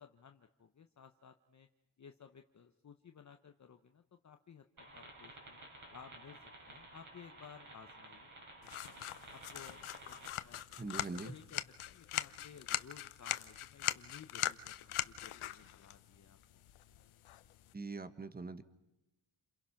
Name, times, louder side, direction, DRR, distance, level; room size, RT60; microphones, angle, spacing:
voice 1, 0.0-1.7 2.0-4.6 4.9-5.6 5.9-6.4 6.7-8.3 8.8-9.0 9.3-9.8 10.0-10.6 11.0-11.6 11.9-16.4, left 7 dB, 35° left, 6 dB, 1.0 m, -56 dB
sound 1, 4.8-10.3, right 2 dB, 40° right, 5.3 m, -54 dB
sound 2, 8.6-17.7, left 12 dB, 85° left, 1.0 m, -41 dB
voice 2, 10.8-11.3 17.7-18.6, right 3 dB, 20° right, 11 dB, 1.3 m, -42 dB
29.5 x 27.5 x 5.9 m, 0.93 s
wide cardioid pair, 150°, 48 cm